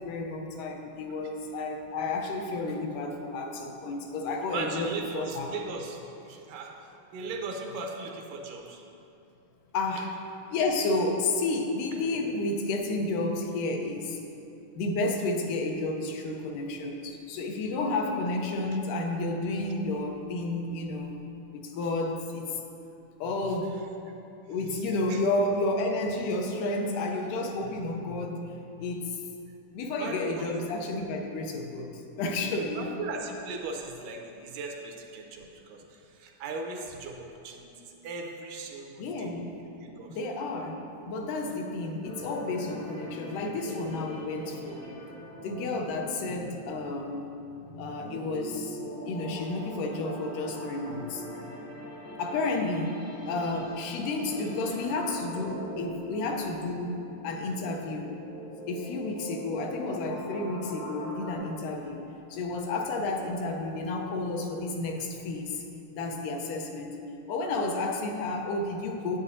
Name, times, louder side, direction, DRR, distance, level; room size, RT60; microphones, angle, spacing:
voice 1, 0.0-5.5 9.7-10.1 10.5-14.2 14.8-21.1 21.5-22.6 23.2-23.8 24.5-29.2 29.7-32.9 39.0-39.6 40.1-44.8 45.4-47.3 47.8-48.8 49.1-51.2 52.2-53.0 53.3-57.0 57.2-58.1 58.7-62.0 62.3-65.6 66.0-66.9 67.3-69.2, left 2 dB, 80° left, 2 dB, 2.1 m, -31 dB
voice 2, 4.5-6.7 7.1-8.8 25.1-25.2 30.0-30.5 32.8-35.8 36.1-37.7 38.0-39.3 39.7-40.1, right 3 dB, 80° right, 2 dB, 2.1 m, -38 dB
sound 1, 42.0-61.4, equal, 60° left, 1.2 m, -42 dB
11.0 x 8.3 x 2.6 m, 2.7 s
omnidirectional pair, 3.8 m